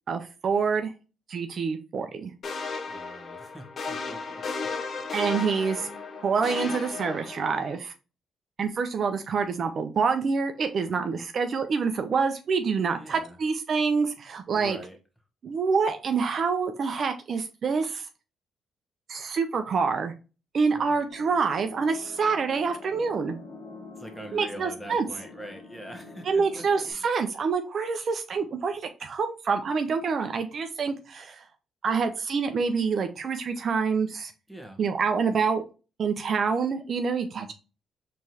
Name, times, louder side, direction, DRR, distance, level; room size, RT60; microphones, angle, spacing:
voice 1, 0.1-0.9 1.3-2.3 5.1-5.9 6.2-7.9 8.6-14.8 15.4-18.1 19.1-20.1 20.5-23.4 24.3-25.1 26.2-31.4 31.8-34.3 34.8-35.6 36.0-37.5, right 5 dB, 55° right, 7 dB, 0.5 m, -26 dB
sound 1, 2.4-7.8, left 4 dB, 50° left, 0.8 m, -35 dB
voice 2, 2.9-4.4 5.2-5.7 13.0-13.4 14.5-15.0 20.7-21.0 24.0-26.8 34.5-34.8 37.4-37.5, right 1 dB, 5° left, 3 dB, 1.3 m, -44 dB
sound 2, 21.1-26.9, left 3 dB, 70° left, 1.3 m, -46 dB
4.5 x 3.1 x 2.7 m, 0.32 s
cardioid pair, 90°, 0 cm